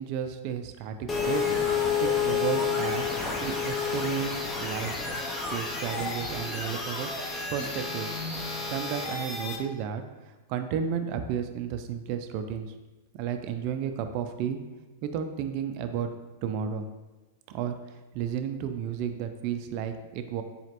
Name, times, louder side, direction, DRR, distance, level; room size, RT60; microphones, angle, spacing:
voice 1, 0.0-1.4 2.0-3.1 3.4-4.9 5.5-7.1 7.5-8.1 8.7-10.0 10.5-12.7 13.1-14.6 15.0-16.1 16.4-16.8 17.5-17.8 18.1-20.4, right 8 dB, 50° right, 7 dB, 0.3 m, -32 dB
sound 1, 1.1-9.6, left 5 dB, 15° left, 0.6 m, -30 dB
4.1 x 3.0 x 2.9 m, 1.2 s
hypercardioid pair, 130°, 0 cm